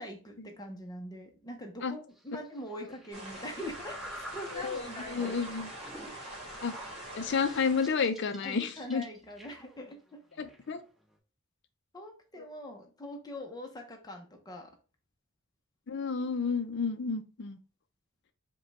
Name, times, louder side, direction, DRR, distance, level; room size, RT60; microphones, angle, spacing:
voice 1, 0.0-5.3 6.1-6.4 8.4-10.2 11.9-14.7, equal, 20° left, 3 dB, 0.7 m, -43 dB
sound 1, 2.1-11.2, equal, ahead, 1.2 m, -49 dB
sound 2, 3.1-8.0, right 1 dB, 25° right, 1.4 m, -44 dB
voice 2, 4.6-5.7 6.6-6.7 7.1-9.0 10.4-10.8 12.4-12.5 15.9-17.6, left 5 dB, 55° left, 9 dB, 0.5 m, -31 dB
5.0 x 2.3 x 4.0 m, 0.36 s
head